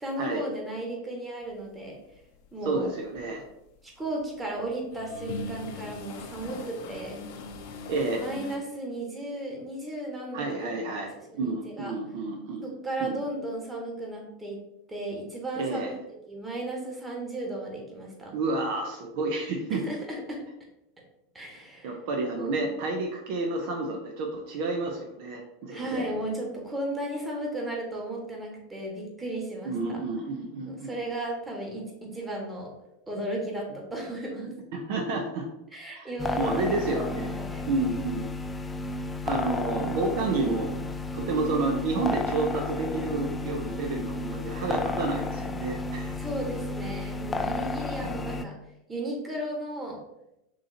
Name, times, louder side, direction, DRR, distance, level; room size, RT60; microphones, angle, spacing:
voice 1, 0.0-2.0 2.5-2.9 3.8-7.2 8.2-11.4 11.6-11.9 12.6-14.6 14.9-15.9 16.3-18.3 19.7-20.4 21.3-22.0 22.3-22.6 25.7-30.0 30.7-32.7 33.1-34.5 35.7-37.6 46.2-48.5 48.9-50.0, right 1 dB, 15° right, -1 dB, 1.6 m, -35 dB
sound 1, 2.2-2.5 2.9-4.3 4.7-8.6, left 3 dB, 60° left, 0.7 m, -40 dB
voice 2, 2.6-3.4 7.9-8.2 10.3-12.7 13.0-13.2 15.6-15.9 18.3-19.8 21.8-26.1 29.7-30.9 34.7-35.5 35.9-36.1 36.4-37.4 37.7-38.3 39.2-40.8 41.1-46.2 48.0-48.3, right 3 dB, 60° right, 2 dB, 0.7 m, -30 dB
sound 2, 36.2-48.4, left 2 dB, 15° left, 0.4 m, -32 dB
6.2 x 2.9 x 2.8 m, 0.86 s
hypercardioid pair, 90°, 0 cm